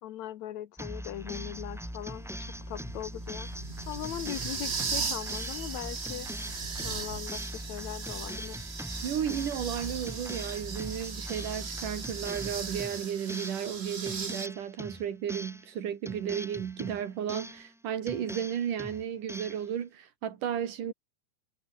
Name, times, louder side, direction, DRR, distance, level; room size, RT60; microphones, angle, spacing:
voice 1, 0.0-3.5 3.9-6.3 6.8-8.7, left 12 dB, 70° left, 2.1 m, -40 dB
sound 1, 0.8-13.8 14.1-15.7 16.1-17.7 18.1-19.7, equal, ahead, 5.6 m, -41 dB
sound 2, 1.3-14.5, right 5 dB, 45° right, 0.8 m, -38 dB
voice 2, 9.0-20.9, right 9 dB, 80° right, 3.8 m, -34 dB
omnidirectional pair, 3.7 m